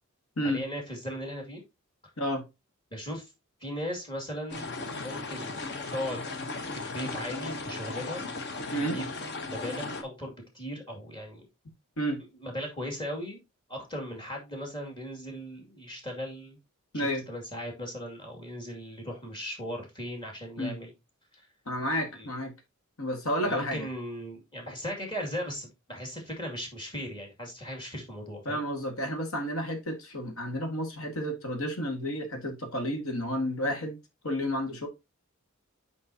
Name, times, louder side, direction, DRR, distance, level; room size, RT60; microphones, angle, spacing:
voice 1, 0.4-1.6 2.9-3.3 3.6-4.7 5.0-5.6 5.9-6.2 6.6-8.3 8.8-9.1 9.5-11.5 12.3-13.4 13.7-16.6 16.9-20.9 22.1-22.3 23.4-28.6, equal, 20° left, 2.3 m, -37 dB
voice 2, 2.2-2.5 8.7-9.0 12.0-12.2 16.9-17.2 20.6-20.8 21.6-22.5 23.0-23.9 28.4-34.0 34.2-34.9, equal, 70° left, 1.7 m, -31 dB
sound 1, 4.5-10.0, left 3 dB, 50° left, 1.0 m, -36 dB
7.7 x 5.3 x 2.8 m
head